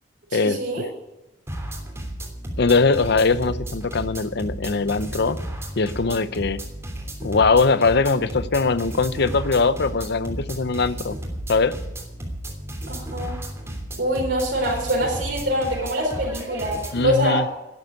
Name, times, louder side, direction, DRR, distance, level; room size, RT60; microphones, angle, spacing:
voice 1, 0.3-0.8 12.9-13.3 14.0-17.4, equal, 65° right, -2 dB, 4.3 m, -24 dB
sound 1, 1.5-17.1, right 1 dB, 15° right, 3.2 m, -33 dB
voice 2, 2.6-5.4 5.8-6.6 7.2-11.2 11.5-11.8 16.9-17.4, left 4 dB, 60° left, 14 dB, 0.7 m, -21 dB
12.0 x 10.5 x 9.4 m, 0.96 s
head